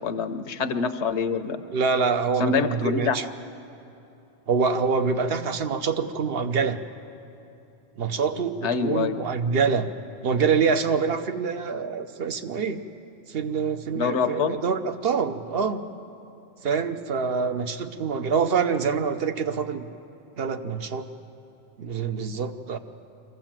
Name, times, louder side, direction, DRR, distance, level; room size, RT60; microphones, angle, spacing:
voice 1, 0.0-1.6 2.4-3.2 8.6-9.2 13.9-14.6, left 5 dB, 75° left, 10 dB, 1.1 m, -25 dB
voice 2, 1.7-3.3 4.5-6.8 8.0-9.9 10.2-12.8 13.3-15.9 16.6-19.9 20.4-21.1 21.8-22.8, right 5 dB, 60° right, 9 dB, 1.0 m, -25 dB
24.0 x 15.5 x 7.4 m, 2.9 s
omnidirectional pair, 1.2 m